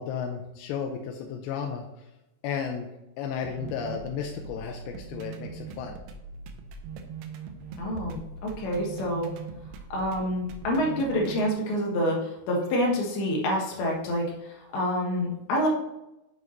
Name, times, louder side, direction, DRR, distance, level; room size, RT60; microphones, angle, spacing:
voice 1, 0.0-1.8 2.4-2.9 3.2-6.0, left 7 dB, 85° left, 2 dB, 2.9 m, -33 dB
sound 1, 3.4-11.5, right 5 dB, 80° right, 2.7 m, -41 dB
voice 2, 7.8-9.3 9.9-15.7, equal, 70° left, -1 dB, 3.1 m, -27 dB
8.0 x 6.0 x 3.1 m, 0.94 s
omnidirectional pair, 4.9 m